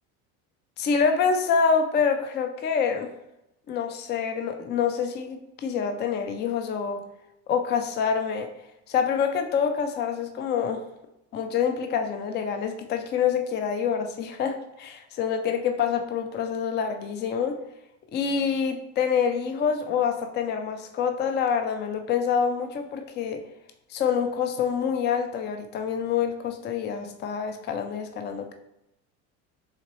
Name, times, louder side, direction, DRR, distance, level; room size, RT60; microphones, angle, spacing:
voice 1, 0.8-3.1 3.7-7.0 7.5-8.5 8.9-10.8 11.3-17.6 18.1-23.4 23.9-28.5, left 6 dB, 30° left, 6 dB, 0.4 m, -26 dB
4.2 x 2.9 x 3.0 m, 0.88 s
supercardioid pair, 110°, 39 cm